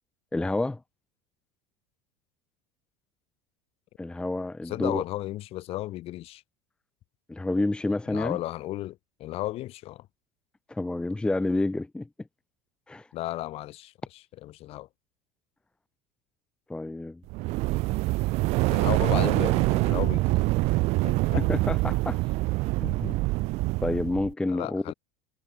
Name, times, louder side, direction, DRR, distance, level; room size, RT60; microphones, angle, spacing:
voice 1, 0.3-0.8 4.0-5.0 7.3-8.4 10.7-12.1 12.9-13.1 16.7-17.2 21.4-22.2 22.8-23.2 23.8-24.9, left 2 dB, 5° left, 0.8 m, -29 dB
voice 2, 4.6-6.4 8.1-10.1 13.1-14.9 18.7-20.4 21.0-21.5 24.5-24.9, left 16 dB, 55° left, 7.4 m, -34 dB
sound 1, 17.3-24.3, right 22 dB, 60° right, 0.9 m, -25 dB
supercardioid pair, 120°, 12 cm